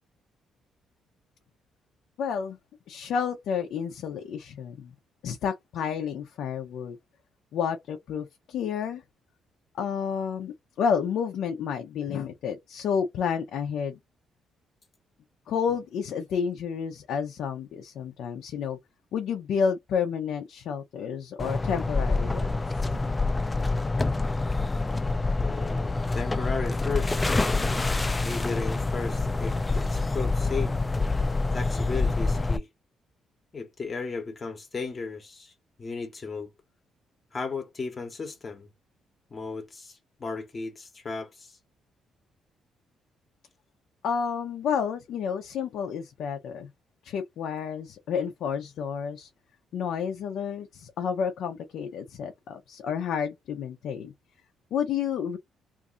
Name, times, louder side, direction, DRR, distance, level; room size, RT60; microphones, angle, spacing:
voice 1, 2.2-2.6 2.9-4.9 5.2-7.0 7.5-9.0 9.7-14.0 15.5-18.8 19.1-22.5 44.0-46.7 47.0-49.3 49.7-54.1 54.7-55.4, left 7 dB, 75° left, 0.6 m, -30 dB
sound 1, 21.4-32.6, left 3 dB, 20° left, 0.4 m, -26 dB
voice 2, 25.4-27.2 28.2-30.8 31.5-32.7 33.5-35.5 35.8-36.5 37.3-38.7 39.3-41.6, left 4 dB, 35° left, 0.9 m, -35 dB
2.6 x 2.5 x 3.7 m
cardioid pair, 90°, 0 cm